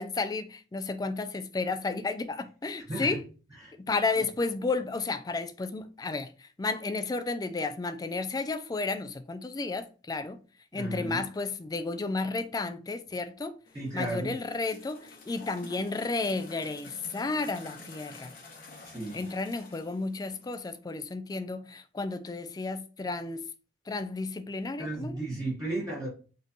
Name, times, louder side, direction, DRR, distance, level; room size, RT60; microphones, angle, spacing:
voice 1, 0.0-3.2 3.9-6.3 6.6-10.4 10.7-13.6 13.9-15.0 15.3-18.3 19.1-23.4 23.9-25.1, left 3 dB, 20° left, 0.3 m, -32 dB
voice 2, 2.8-3.2 3.6-3.7 10.7-11.2 13.7-14.3 18.8-19.2 24.8-26.1, right 2 dB, 20° right, 1.3 m, -34 dB
sound 1, 13.7-20.8, left 3 dB, 50° left, 1.0 m, -50 dB
4.1 x 3.1 x 2.7 m
head